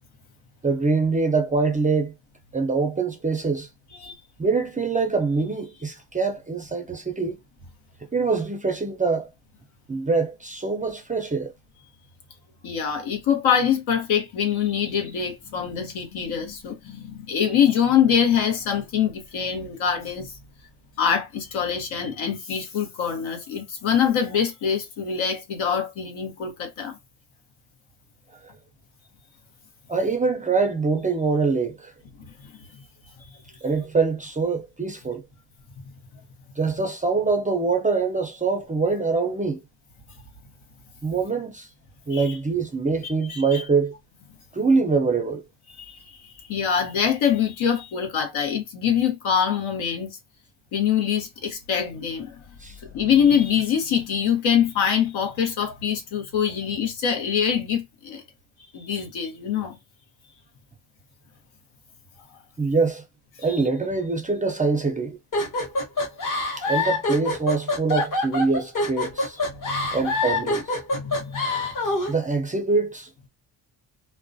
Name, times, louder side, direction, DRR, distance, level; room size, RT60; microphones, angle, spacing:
voice 1, 0.6-2.1 2.5-3.7 4.4-7.4 8.1-9.3 9.9-11.5 29.9-31.9 33.6-35.2 36.6-39.6 41.0-41.7 42.1-43.9 44.5-45.4 52.6-52.7 62.6-63.0 63.4-65.2 66.6-69.4 69.9-70.8 72.1-73.3, right 4 dB, 20° right, 0.3 m, -24 dB
voice 2, 12.6-20.4 21.0-27.0 32.2-32.5 42.1-42.4 43.0-43.6 45.7-50.2 50.7-52.4 52.9-58.2 58.7-59.8 63.4-63.6 69.6-69.9 70.9-71.5, left 8 dB, 85° left, 1.0 m, -24 dB
sound 1, 65.3-72.1, left 2 dB, 40° left, 0.9 m, -25 dB
2.2 x 2.2 x 2.5 m
cardioid pair, 105°, 46 cm